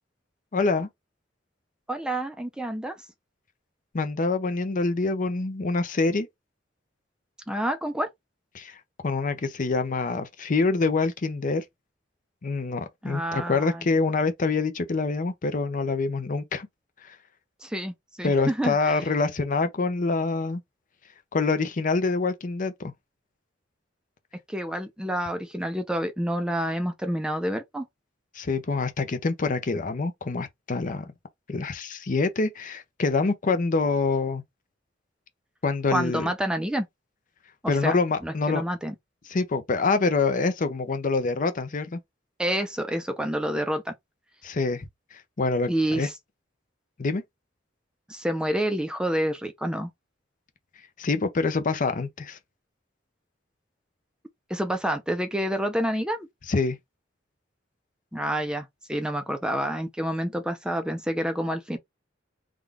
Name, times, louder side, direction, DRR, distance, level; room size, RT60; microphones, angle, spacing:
voice 1, 0.5-0.9 3.9-6.3 8.5-11.6 12.4-16.7 17.0-17.2 18.2-20.6 21.3-22.9 28.3-31.1 31.5-34.4 35.6-36.3 37.7-38.6 39.3-42.0 44.4-44.8 45.1-46.1 47.0-47.2 51.0-52.4 56.5-56.8, left 3 dB, 45° left, 0.6 m, -26 dB
voice 2, 1.9-3.0 7.5-8.1 13.0-13.8 17.6-19.0 24.5-27.9 35.9-36.9 37.6-38.0 38.2-38.9 42.4-43.9 45.7-46.1 48.1-49.9 54.5-56.3 58.1-61.8, right 1 dB, 5° right, 0.5 m, -28 dB
3.7 x 2.3 x 3.4 m
head